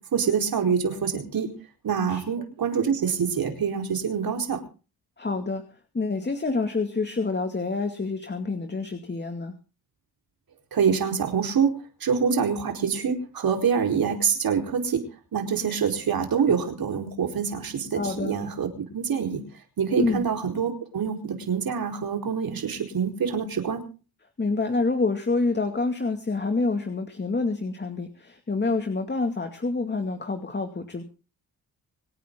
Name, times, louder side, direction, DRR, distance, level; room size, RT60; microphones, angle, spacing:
voice 1, 0.1-1.5 1.8-4.6 10.7-11.7 12.0-15.0 15.3-18.7 18.9-19.4 19.8-23.8, right 6 dB, 65° right, 4 dB, 4.6 m, -25 dB
voice 2, 5.2-9.5 17.9-18.4 20.0-20.3 24.4-31.0, left 3 dB, 30° left, 7 dB, 2.3 m, -27 dB
26.0 x 9.3 x 3.9 m, 0.35 s
cardioid pair, 75°, 38 cm